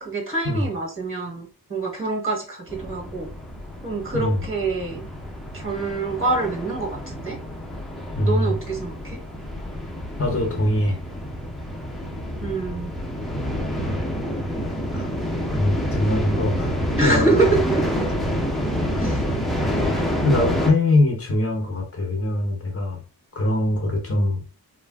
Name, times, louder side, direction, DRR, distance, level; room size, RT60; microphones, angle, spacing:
voice 1, 0.0-3.3 3.8-5.0 5.5-7.4 8.2-9.2 12.4-12.9 17.0-17.8 18.9-19.1, right 3 dB, 35° right, -2 dB, 1.2 m, -26 dB
sound 1, 2.7-20.7, equal, ahead, 0.5 m, -28 dB
voice 2, 8.2-8.5 10.2-11.0 14.9-15.1 15.4-16.7 17.0-17.5 19.0-19.2 20.2-23.0 23.4-24.4, left 1 dB, 40° left, 1 dB, 0.6 m, -22 dB
3.1 x 2.5 x 2.2 m, 0.35 s
wide cardioid pair, 95°, 38 cm